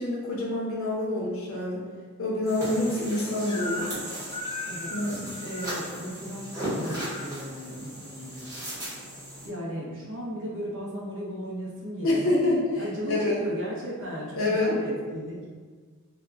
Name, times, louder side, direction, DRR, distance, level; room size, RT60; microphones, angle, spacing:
voice 1, 0.0-1.8 2.2-3.9 4.9-5.3 12.0-13.4 14.3-14.7, left 1 dB, 65° left, -4 dB, 0.8 m, -27 dB
sound 1, 2.4-9.5, equal, 15° right, 1.0 m, -37 dB
Crying sobbing / Screech, 3.5-4.0 4.3-5.8 6.6-7.3, left 1 dB, 25° left, 0.3 m, -37 dB
voice 2, 4.6-8.5 9.4-12.4 12.7-15.5, equal, 60° right, -4 dB, 0.8 m, -36 dB
2.8 x 2.3 x 3.5 m, 1.5 s
head